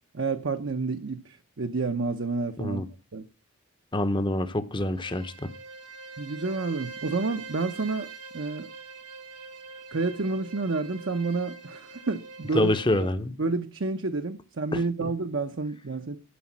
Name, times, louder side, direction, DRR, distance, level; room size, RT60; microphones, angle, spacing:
voice 1, 0.1-2.8 3.1-3.2 6.2-8.7 9.9-12.7 13.4-16.2, right 3 dB, 55° right, 0.7 m, -29 dB
voice 2, 3.9-5.5 12.5-13.4, left 1 dB, 20° left, 0.7 m, -26 dB
Bowed string instrument, 4.8-13.1, right 4 dB, 80° right, 1.7 m, -44 dB
11.5 x 5.3 x 7.2 m
head